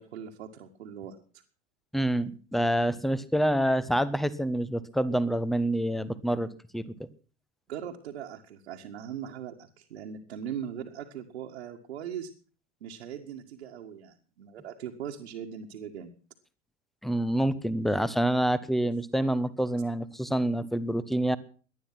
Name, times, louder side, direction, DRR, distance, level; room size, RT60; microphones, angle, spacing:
voice 1, 0.0-1.4 7.7-12.3 12.8-16.1, right 8 dB, 65° right, 0 dB, 1.9 m, -40 dB
voice 2, 1.9-6.5 6.7-6.9 17.0-21.4, right 1 dB, ahead, 17 dB, 1.1 m, -27 dB
19.0 x 12.0 x 6.0 m, 0.40 s
figure-of-eight pair, 80°, 36 cm